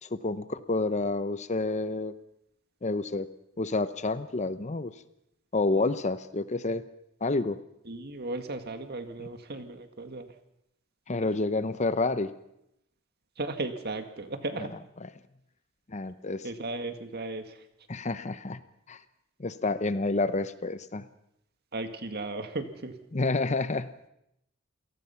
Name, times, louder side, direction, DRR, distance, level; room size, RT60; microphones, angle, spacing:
voice 1, 0.0-2.1 2.8-3.3 3.6-4.9 5.5-6.9 7.2-7.6 9.2-9.3 11.1-12.3 14.6-14.7 15.9-16.5 17.9-18.6 18.9-19.0 19.4-21.1 23.1-23.9, left 3 dB, 35° left, 13 dB, 0.8 m, -29 dB
voice 2, 7.9-10.3 13.4-14.7 16.4-17.6 21.7-23.0, right 2 dB, 50° right, 8 dB, 1.9 m, -35 dB
27.5 x 18.0 x 5.8 m, 0.80 s
head